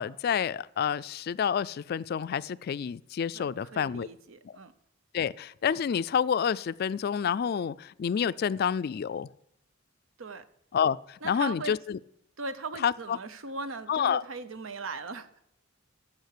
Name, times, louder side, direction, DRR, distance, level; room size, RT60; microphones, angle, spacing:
voice 1, 0.0-4.1 4.4-4.5 5.1-9.3 10.7-12.0 12.8-13.2 13.9-14.2, left 7 dB, 50° left, 0.3 m, -29 dB
voice 2, 3.3-4.7 10.2-10.4 11.2-11.8 12.4-15.3, right 3 dB, 85° right, 0.8 m, -39 dB
14.5 x 5.9 x 6.6 m
head